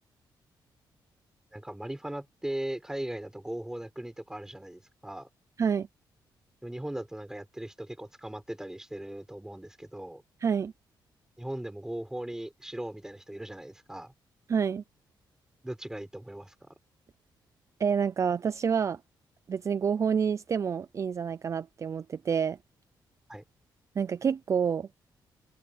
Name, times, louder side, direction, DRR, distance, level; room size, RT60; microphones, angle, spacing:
voice 1, 1.5-5.3 6.6-10.2 11.4-14.1 15.6-16.5 23.3-23.4, right 1 dB, 5° right, 6.2 m, -38 dB
voice 2, 10.4-10.7 14.5-14.8 17.8-19.0 19.5-22.6 24.0-24.9, right 6 dB, 40° right, 0.5 m, -28 dB
cardioid pair, 120°, 8 cm